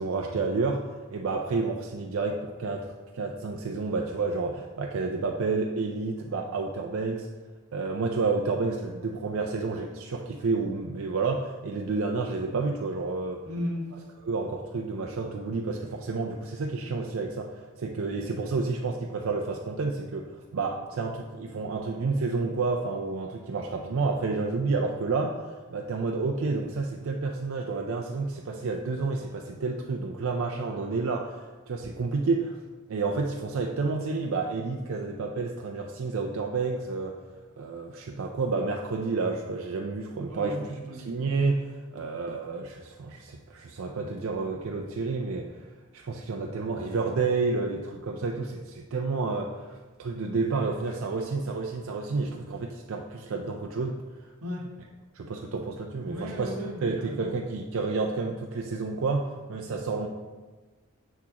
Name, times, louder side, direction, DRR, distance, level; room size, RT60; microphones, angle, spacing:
voice 1, 0.0-7.3 7.7-13.4 14.2-32.6 32.9-37.1 37.6-40.6 41.1-45.5 45.9-54.3 55.1-56.5 56.8-60.1, right 4 dB, 60° right, 2 dB, 0.4 m, -30 dB
voice 2, 13.4-13.9 40.3-41.1 41.9-42.1 54.4-54.7 56.0-57.4, equal, 90° right, 0 dB, 1.1 m, -35 dB
7.1 x 6.0 x 2.9 m, 1.3 s
head